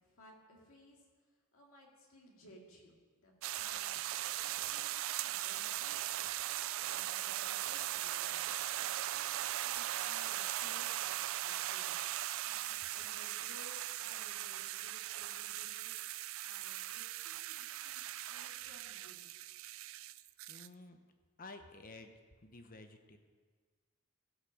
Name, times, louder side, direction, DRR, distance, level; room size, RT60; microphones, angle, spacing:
voice 1, 0.0-4.1 4.4-8.5 8.8-19.6, left 1 dB, 60° left, -1 dB, 2.3 m, -60 dB
sound 1, 3.4-20.7, right 14 dB, 60° right, 0.3 m, -39 dB
voice 2, 20.5-21.0 21.4-22.1 22.4-23.2, left 2 dB, 40° left, 7 dB, 0.9 m, -52 dB
16.0 x 5.9 x 6.4 m, 1.5 s
head